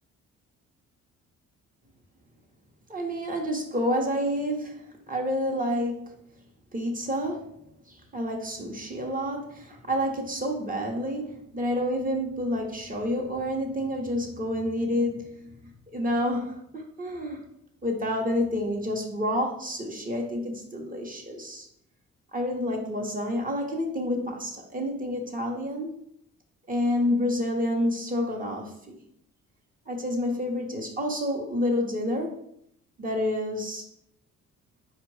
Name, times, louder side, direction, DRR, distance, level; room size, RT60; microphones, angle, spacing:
voice 1, 2.9-6.1 6.7-7.5 7.9-17.4 17.8-21.7 22.3-26.0 26.7-28.7 29.9-32.4 33.0-33.8, left 1 dB, 30° right, 1 dB, 1.0 m, -29 dB
4.5 x 2.4 x 4.8 m, 0.73 s
cardioid pair, 90°, 30 cm